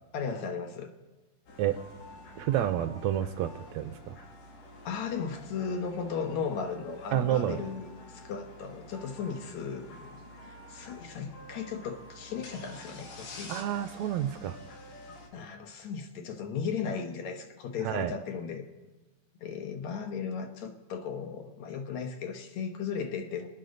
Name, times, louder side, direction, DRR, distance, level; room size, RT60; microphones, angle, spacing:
voice 1, 0.1-0.9 4.8-13.5 15.3-18.7 19.4-23.5, left 6 dB, 65° left, 5 dB, 2.4 m, -36 dB
sound 1, 1.5-15.3, left 1 dB, 90° left, 3.6 m, -49 dB
voice 2, 2.4-4.2 7.1-7.6 13.5-14.6 17.8-18.1, right 11 dB, 75° right, 10 dB, 1.9 m, -29 dB
25.0 x 9.5 x 3.9 m, 1.2 s
omnidirectional pair, 3.6 m